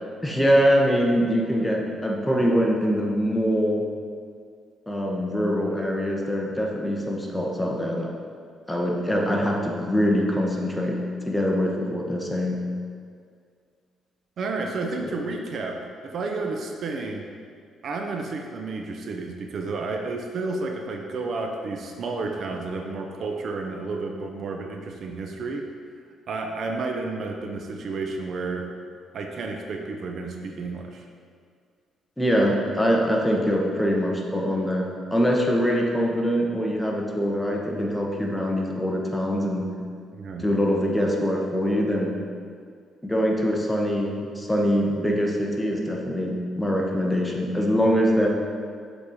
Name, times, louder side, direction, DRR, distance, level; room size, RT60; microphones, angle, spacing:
voice 1, 0.2-3.8 4.9-8.1 8.7-12.6 15.0-15.1 32.2-39.7 40.4-42.2 43.0-48.3, equal, 5° left, -1 dB, 1.2 m, -23 dB
voice 2, 14.4-17.3 17.8-25.7 26.3-28.7 29.1-31.0 40.1-40.5, right 3 dB, 60° right, 2 dB, 0.7 m, -31 dB
6.9 x 4.3 x 5.0 m, 2.2 s
cardioid pair, 90°, 0 cm